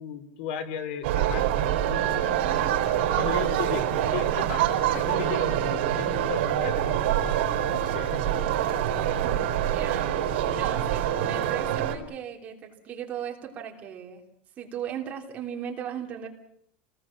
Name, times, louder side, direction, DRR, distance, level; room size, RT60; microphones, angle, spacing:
voice 1, 0.0-2.4 3.2-8.6 9.0-9.2, left 7 dB, 65° left, 10 dB, 2.8 m, -36 dB
sound 1, 1.0-12.0, right 11 dB, 75° right, 4.1 m, -25 dB
voice 2, 9.1-14.2 14.6-16.3, right 8 dB, 25° right, 1 dB, 3.4 m, -37 dB
29.0 x 19.5 x 7.4 m, 0.70 s
supercardioid pair, 175°, 6 cm